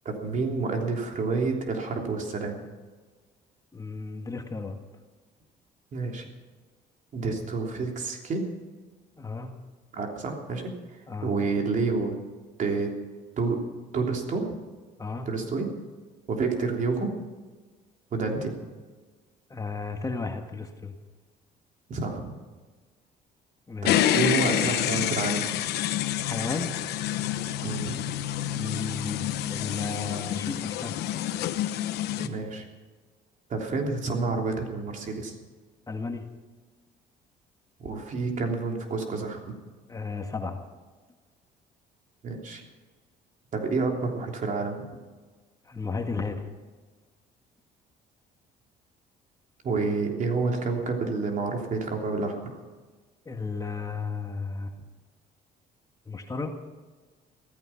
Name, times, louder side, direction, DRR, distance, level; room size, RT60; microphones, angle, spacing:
voice 1, 0.0-2.6 5.9-6.3 7.1-8.4 9.9-12.1 12.6-12.9 13.4-13.6 13.9-14.5 15.2-15.7 16.3-17.1 18.1-18.5 21.9-22.3 23.8-25.5 27.6-27.9 32.2-32.7 33.5-35.3 37.8-39.5 42.2-42.6 43.5-44.8 49.6-52.6, right 4 dB, 50° right, 2 dB, 3.3 m, -29 dB
voice 2, 3.7-4.8 9.2-9.5 11.1-11.3 15.0-15.3 19.5-20.9 23.7-24.0 26.2-26.7 28.5-30.9 35.9-36.2 39.9-40.6 45.6-46.5 53.2-54.7 56.1-56.5, left 4 dB, 20° left, 4 dB, 1.6 m, -34 dB
sound 1, 23.8-32.3, left 12 dB, 80° left, 1.0 m, -28 dB
16.0 x 14.5 x 5.9 m, 1.4 s
cardioid pair, 110°, 17 cm